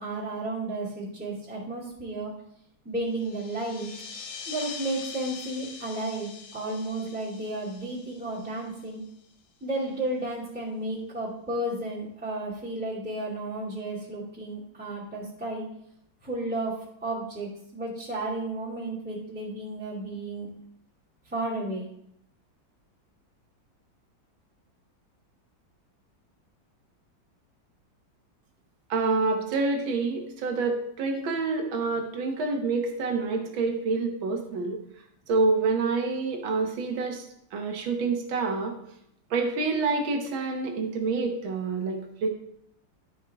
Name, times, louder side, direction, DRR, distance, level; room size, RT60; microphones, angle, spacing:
voice 1, 0.0-2.3 2.8-3.9 4.5-9.0 9.6-15.6 16.2-20.5 21.2-21.9, right 2 dB, 5° right, -9 dB, 2.4 m, -33 dB
sound 1, 3.1-9.3, left 6 dB, 70° left, 1.6 m, -43 dB
voice 2, 28.9-34.8 35.3-38.8 39.3-42.3, right 3 dB, 90° right, 3 dB, 1.9 m, -27 dB
13.0 x 5.5 x 3.5 m, 0.72 s
omnidirectional pair, 2.1 m